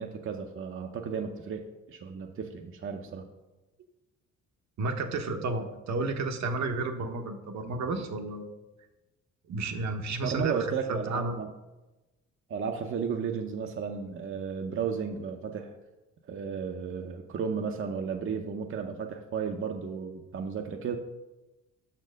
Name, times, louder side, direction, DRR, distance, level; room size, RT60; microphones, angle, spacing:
voice 1, 0.0-1.6 1.9-3.3 10.2-11.5 12.5-15.7 16.2-21.0, right 6 dB, 45° right, 4 dB, 0.6 m, -33 dB
voice 2, 4.8-8.6 9.5-11.4, right 3 dB, 65° right, 5 dB, 0.9 m, -32 dB
6.2 x 4.4 x 6.2 m, 1.1 s
cardioid pair, 90°, 30 cm